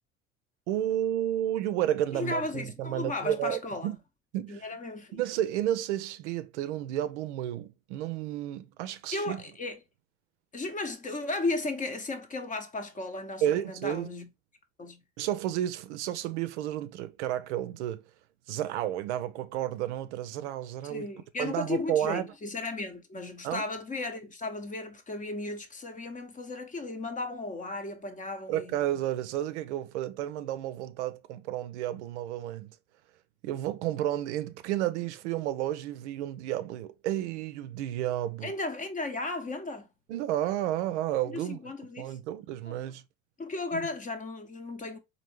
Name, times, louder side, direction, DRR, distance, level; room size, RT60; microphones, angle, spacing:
voice 1, 0.7-4.0 4.3-4.7 5.1-9.4 13.4-14.1 15.2-18.0 18.5-21.1 21.4-22.3 23.4-23.6 28.5-32.8 33.4-38.5 40.1-41.6 42.0-43.0 43.7-43.8, right 12 dB, 65° right, 0.5 m, -31 dB
voice 2, 2.1-3.9 4.5-5.2 9.1-9.8 10.5-14.3 14.8-15.0 20.8-28.8 38.4-39.9 41.2-42.2 42.7-42.8 43.4-45.0, left 2 dB, 20° left, 0.8 m, -35 dB
4.2 x 2.8 x 2.9 m
hypercardioid pair, 75°, 37 cm